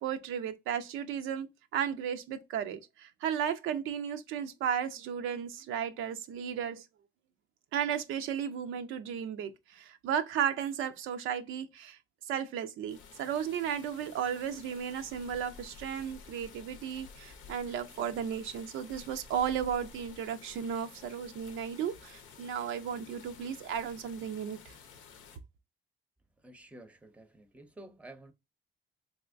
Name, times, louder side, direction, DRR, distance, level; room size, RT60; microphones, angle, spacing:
voice 1, 0.0-1.5 1.7-6.9 7.7-12.0 12.3-24.8, right 8 dB, 85° right, 0.5 m, -34 dB
sound 1, 12.9-25.4, left 6 dB, 90° left, 0.7 m, -52 dB
voice 2, 26.4-28.3, right 1 dB, 5° right, 0.6 m, -51 dB
3.4 x 3.0 x 2.4 m
cardioid pair, 90°, 20 cm